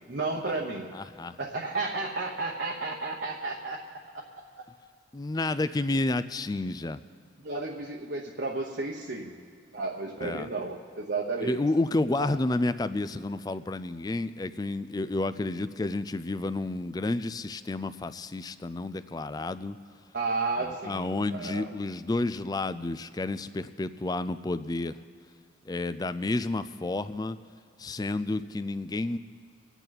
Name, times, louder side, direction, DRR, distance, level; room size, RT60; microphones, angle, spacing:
voice 1, 0.1-1.0 1.4-3.8 4.1-4.2 7.4-9.3 9.7-11.6 20.1-21.7, right 3 dB, 55° right, -1 dB, 1.0 m, -32 dB
voice 2, 0.9-1.4 5.1-7.0 10.2-10.5 11.4-19.8 20.6-25.0 25.7-27.4 27.8-29.2, left 2 dB, 20° left, 13 dB, 0.3 m, -30 dB
25.0 x 9.0 x 4.1 m, 2.2 s
head